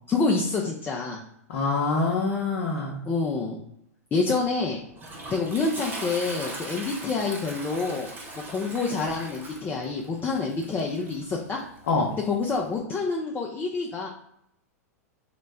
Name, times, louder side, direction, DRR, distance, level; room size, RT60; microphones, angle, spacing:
voice 1, 0.1-1.2 3.1-3.6 4.1-4.8 5.3-8.1 8.5-11.6 12.3-14.1, left 4 dB, 20° left, -1 dB, 0.5 m, -27 dB
voice 2, 1.5-3.0 11.9-12.1, left 3 dB, 60° left, -3 dB, 0.7 m, -25 dB
Toilet flush, 4.5-12.8, right 2 dB, 20° right, 1.0 m, -40 dB
3.9 x 2.1 x 3.3 m, 0.76 s
figure-of-eight pair, 100°, 9 cm